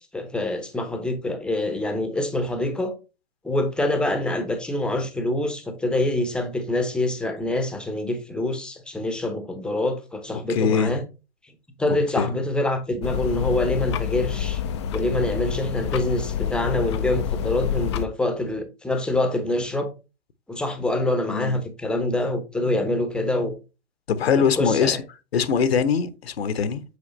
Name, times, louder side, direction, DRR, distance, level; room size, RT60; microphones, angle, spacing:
voice 1, 0.1-2.9 3.4-11.0 11.8-14.6 14.9-19.9 20.5-23.5 24.4-25.0, left 1 dB, 5° left, 0.8 m, -25 dB
voice 2, 10.3-10.9 11.9-12.3 21.3-21.6 24.1-25.0 25.3-26.8, left 6 dB, 60° left, 1.0 m, -22 dB
sound 1, 13.0-18.1, left 9 dB, 25° left, 0.4 m, -28 dB
8.3 x 4.8 x 3.2 m
figure-of-eight pair, 120°, 36 cm